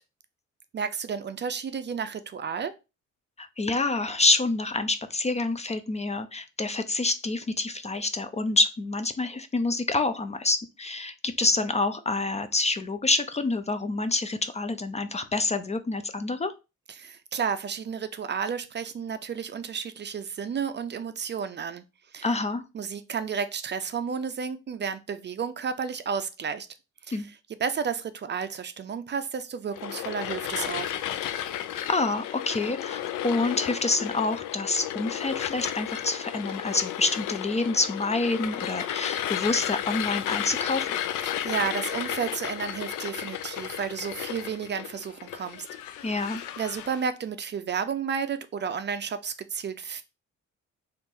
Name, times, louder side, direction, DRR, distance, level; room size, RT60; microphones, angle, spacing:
voice 1, 0.7-2.7 16.9-21.8 22.1-22.4 22.7-26.7 27.1-31.0 41.2-45.7 46.0-50.0, right 6 dB, 35° right, 0.4 m, -32 dB
voice 2, 3.4-16.5 22.2-22.6 27.1-27.2 31.9-41.0 46.0-46.4, left 3 dB, 20° left, 0.4 m, -27 dB
sound 1, 29.7-47.0, left 11 dB, 90° left, 0.5 m, -33 dB
3.5 x 2.5 x 4.3 m
cardioid pair, 90°, 30 cm